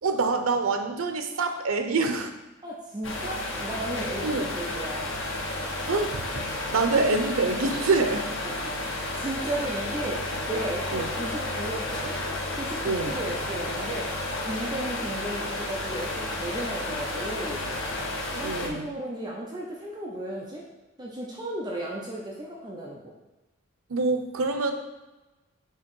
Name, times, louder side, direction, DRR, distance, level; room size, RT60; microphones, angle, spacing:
voice 1, 0.0-2.3 4.2-4.5 5.9-8.3 10.9-11.1 12.8-13.2 18.4-18.9 23.9-24.7, right 3 dB, 90° right, 7 dB, 0.7 m, -26 dB
voice 2, 2.6-5.2 9.2-12.2 12.6-14.1 14.4-17.6 18.3-20.6 21.0-23.1, right 1 dB, 20° right, -3 dB, 0.6 m, -34 dB
sound 1, 3.0-18.7, left 2 dB, 65° left, 1.0 m, -32 dB
6.5 x 3.0 x 5.3 m, 1.1 s
head